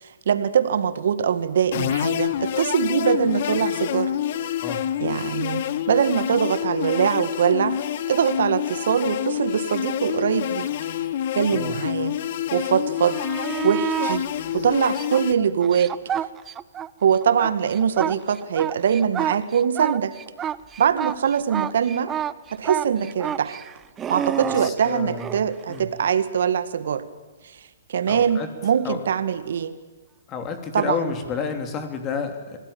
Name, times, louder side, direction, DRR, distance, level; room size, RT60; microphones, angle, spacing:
voice 1, 0.0-4.1 5.0-7.8 8.1-10.7 11.3-12.1 12.5-13.2 13.6-14.3 14.5-15.9 17.0-20.1 20.8-22.1 22.5-23.6 24.1-27.0 27.9-29.7 30.7-31.0, right 8 dB, 65° right, 12 dB, 2.0 m, -22 dB
sound 1, 1.7-15.3, left 11 dB, 55° left, 1.4 m, -27 dB
sound 2, 13.0-14.2 14.8-16.9 17.2-25.4 28.2-28.3, right 9 dB, 20° right, 0.7 m, -29 dB
voice 2, 24.4-25.3 25.7-25.9 28.1-28.5 28.8-29.0 30.3-32.6, left 5 dB, 25° left, 6 dB, 3.5 m, -30 dB
26.5 x 18.0 x 8.9 m, 1.3 s
hypercardioid pair, 130°, 0 cm